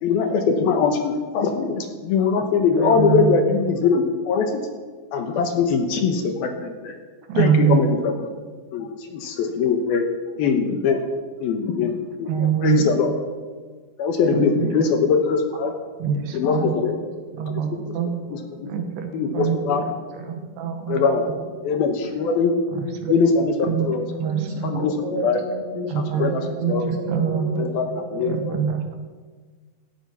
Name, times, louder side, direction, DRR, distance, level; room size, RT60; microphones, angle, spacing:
voice 1, 0.0-4.6 5.1-6.9 7.4-8.3 8.7-10.1 10.4-11.0 11.4-13.1 14.0-15.7 16.3-17.0 18.3-18.4 19.1-19.9 20.9-21.3 21.6-22.5 23.1-23.3 23.8-24.0 24.6-24.9 25.2-25.4 26.2-26.4 26.7-26.8 27.6-27.8 28.1-28.3, left 5 dB, 70° left, 5 dB, 3.0 m, -21 dB
voice 2, 2.8-3.4 7.3-7.8 12.3-12.8 14.3-14.8 16.0-16.7 17.4-18.1 18.7-19.6 20.6-21.0 23.7-23.9 24.2-24.8 25.9-26.2 26.6-26.7 27.1-27.7 28.3-29.0, right 7 dB, 75° right, 5 dB, 3.6 m, -23 dB
voice 3, 16.3-18.8 19.1-19.9 20.2-20.3 21.4-23.1 24.2-28.4, right 1 dB, 35° right, 0 dB, 3.0 m, -35 dB
17.0 x 14.0 x 5.7 m, 1.5 s
omnidirectional pair, 4.8 m